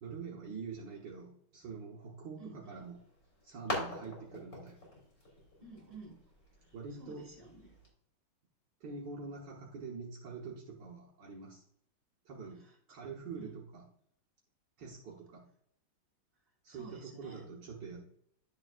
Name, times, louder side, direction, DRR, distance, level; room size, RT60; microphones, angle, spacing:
voice 1, 0.0-3.0 3.4-4.8 6.7-7.3 8.8-11.6 12.3-13.9 14.8-15.5 16.6-18.0, right 4 dB, 65° right, -3 dB, 1.8 m, -45 dB
voice 2, 2.4-2.8 5.6-6.2 7.0-7.7 13.4-13.5 16.7-17.5, right 3 dB, 20° right, -1 dB, 2.6 m, -52 dB
sound 1, 2.8-7.9, left 1 dB, 45° left, 3.7 m, -44 dB
11.0 x 6.9 x 2.4 m, 0.69 s
omnidirectional pair, 2.2 m